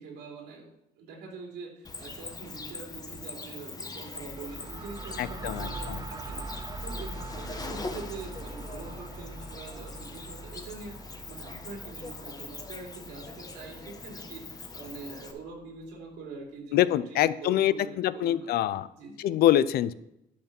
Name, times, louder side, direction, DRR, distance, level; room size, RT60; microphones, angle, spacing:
voice 1, 0.0-18.5 18.9-19.2, right 4 dB, 90° right, 0 dB, 3.3 m, -44 dB
Cricket, 1.8-15.3, left 3 dB, 20° left, 1.2 m, -42 dB
sound 1, 4.2-15.9, right 2 dB, 20° right, 0.6 m, -43 dB
voice 2, 5.2-6.0 16.7-18.9 19.2-19.9, left 12 dB, 65° left, 16 dB, 0.5 m, -25 dB
10.5 x 5.9 x 5.9 m, 0.84 s
cardioid pair, 110°, 17 cm